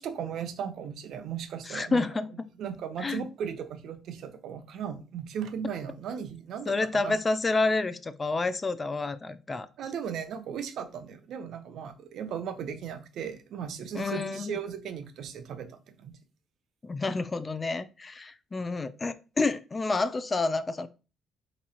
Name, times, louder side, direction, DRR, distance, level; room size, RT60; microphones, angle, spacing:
voice 1, 0.0-2.0 2.6-7.1 9.8-16.1, right 7 dB, 75° right, 0.6 m, -37 dB
voice 2, 1.7-2.5 3.0-3.3 6.7-9.7 13.9-14.5 16.8-20.9, left 3 dB, 30° left, 0.4 m, -29 dB
3.4 x 3.0 x 4.3 m
cardioid pair, 90°, 0 cm